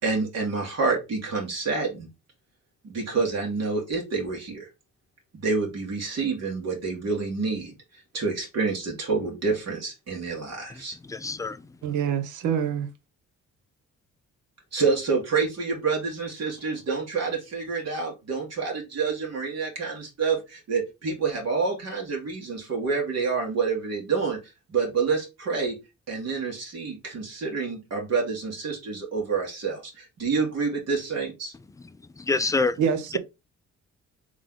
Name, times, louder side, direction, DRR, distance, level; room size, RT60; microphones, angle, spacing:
voice 1, 0.0-2.1 2.8-4.7 5.3-7.7 8.1-11.0 14.7-24.4 24.7-25.8 26.1-31.5, right 4 dB, 55° right, 2.0 m, -28 dB
voice 2, 10.7-11.8 32.3-32.8, left 3 dB, 10° left, 0.3 m, -27 dB
voice 3, 11.8-12.9 32.8-33.2, right 8 dB, 80° right, 0.9 m, -25 dB
3.6 x 3.3 x 3.8 m
cardioid pair, 90°, 30 cm